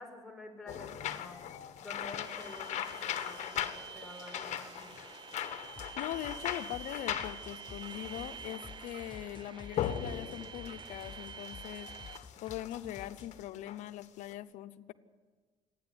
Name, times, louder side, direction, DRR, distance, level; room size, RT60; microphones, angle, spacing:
voice 1, 0.0-1.4 1.8-4.9, left 2 dB, 5° left, 1 dB, 5.2 m, -49 dB
sound 1, 0.7-14.3, left 10 dB, 70° left, 1.4 m, -40 dB
sound 2, 2.2-12.2, right 7 dB, 40° right, 0.7 m, -48 dB
sound 3, 5.7-13.4, left 7 dB, 40° left, 1.1 m, -52 dB
voice 2, 6.0-11.9 12.4-14.9, left 13 dB, 85° left, 10 dB, 0.8 m, -41 dB
27.5 x 10.0 x 9.6 m, 1.4 s
cardioid pair, 100°, 12 cm